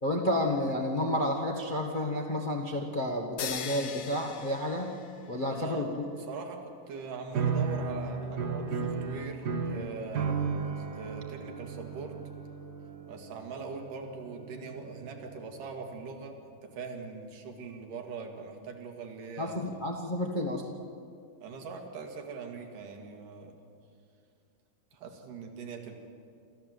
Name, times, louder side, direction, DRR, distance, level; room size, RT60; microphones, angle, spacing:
voice 1, 0.0-4.9 5.3-6.1 19.4-20.7, left 1 dB, 40° left, -2 dB, 0.6 m, -31 dB
sound 1, 3.4-5.5, left 7 dB, 65° left, 1.9 m, -39 dB
voice 2, 5.5-5.9 6.3-12.2 13.1-19.8 21.4-23.5 24.9-25.9, right 4 dB, 85° right, 3 dB, 3.5 m, -42 dB
sound 2, 7.3-15.7, right 5 dB, 50° right, 1.2 m, -35 dB
28.0 x 13.5 x 7.9 m, 2.4 s
omnidirectional pair, 3.7 m